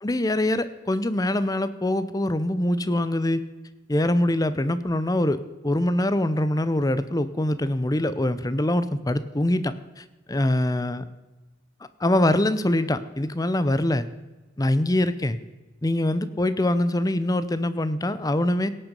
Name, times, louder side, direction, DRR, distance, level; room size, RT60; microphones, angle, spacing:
voice 1, 0.0-3.4 3.9-11.0 12.0-14.1 14.6-15.4 15.8-18.7, left 1 dB, 20° left, 13 dB, 0.6 m, -24 dB
17.0 x 9.0 x 5.4 m, 1.2 s
head